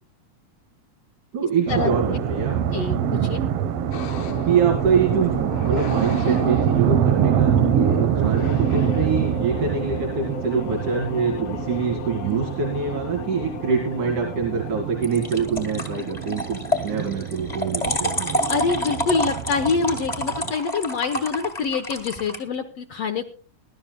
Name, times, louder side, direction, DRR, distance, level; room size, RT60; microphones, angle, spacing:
voice 1, 1.3-2.6 4.5-18.3, right 5 dB, 85° right, 1 dB, 3.8 m, -25 dB
sound 1, 1.7-20.5, right 9 dB, 65° right, 1.7 m, -25 dB
voice 2, 2.7-3.4 18.5-23.2, left 5 dB, 65° left, 4 dB, 1.9 m, -25 dB
sound 2, 3.9-16.9, left 10 dB, 80° left, 2.3 m, -38 dB
sound 3, 4.8-5.4 15.0-22.4, left 1 dB, 15° left, 1.6 m, -29 dB
23.0 x 12.0 x 2.3 m, 0.36 s
omnidirectional pair, 3.5 m